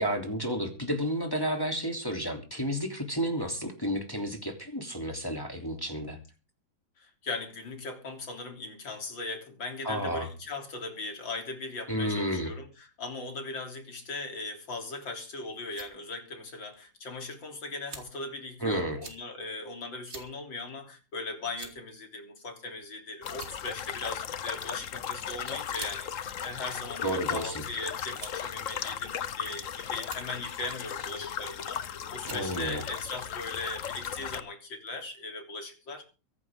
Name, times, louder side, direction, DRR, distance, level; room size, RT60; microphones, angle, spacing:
voice 1, 0.0-6.2 9.8-10.3 11.9-12.5 18.6-19.0 27.0-27.6 32.2-32.8, equal, 10° left, 3.0 m, -31 dB
voice 2, 7.0-36.0, left 3 dB, 80° left, 4.2 m, -39 dB
sound 1, 15.7-15.9 16.7-16.8 17.9-18.2 19.0-19.2 20.1-20.3 20.7-20.8 21.5-21.9 22.8-23.0 23.3-23.8 24.9-25.0 25.7-26.0 26.8-27.4 28.1-28.5 29.3-29.6 30.0-30.3 31.5-31.8 32.2-32.5, right 2 dB, 35° right, 3.0 m, -45 dB
sound 2, 23.2-34.4, left 8 dB, 50° left, 1.1 m, -36 dB
23.0 x 11.0 x 3.7 m
omnidirectional pair, 2.0 m